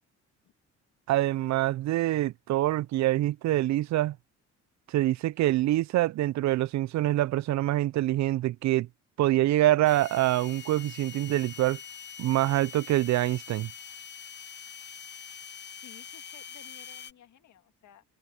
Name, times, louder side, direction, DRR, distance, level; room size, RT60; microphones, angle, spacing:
voice 1, 1.1-4.2 4.9-8.9 9.2-11.8 12.2-13.7, right 15 dB, 65° right, 0.5 m, -25 dB
sound 1, 9.8-17.1, left 7 dB, 35° left, 0.9 m, -44 dB
voice 2, 15.8-18.0, left 10 dB, 70° left, 2.0 m, -55 dB
open air
cardioid pair, 90°, 30 cm